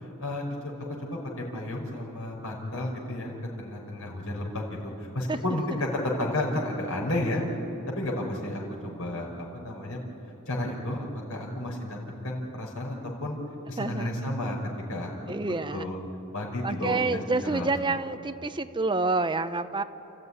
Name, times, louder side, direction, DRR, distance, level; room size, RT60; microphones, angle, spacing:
voice 1, 0.2-0.7 1.0-7.4 7.9-10.0 10.5-12.0 12.2-13.4 13.7-14.6 14.9-16.0 16.3-17.2 17.5-18.0, left 1 dB, 80° left, -2 dB, 4.9 m, -32 dB
voice 2, 5.3-5.6 13.8-14.3 15.3-15.9 16.6-19.8, right 3 dB, 25° right, 10 dB, 0.8 m, -28 dB
29.5 x 14.0 x 9.7 m, 3.0 s
head